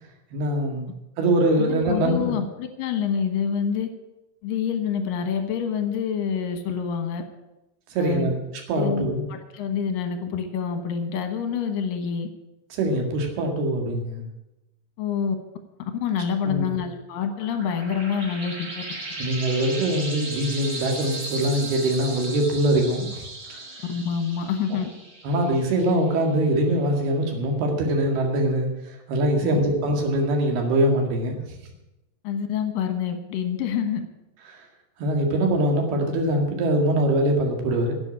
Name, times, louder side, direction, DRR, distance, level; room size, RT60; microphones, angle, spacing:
voice 1, 0.3-0.9 1.2-2.4 7.9-8.3 8.7-9.3 12.7-14.2 16.4-16.7 19.2-23.2 23.5-23.6 25.2-28.7 29.1-31.4 34.5-34.6 35.0-37.9, right 1 dB, 65° right, 2 dB, 3.8 m, -23 dB
voice 2, 1.6-3.9 4.4-7.2 8.0-8.3 8.8-12.3 15.0-15.4 16.0-18.8 23.9-24.9 29.4-29.6 32.2-34.0, left 7 dB, 65° left, 7 dB, 2.5 m, -27 dB
sound 1, 17.1-26.3, right 2 dB, 35° right, 4.0 m, -37 dB
11.0 x 7.9 x 9.7 m, 0.96 s
omnidirectional pair, 5.0 m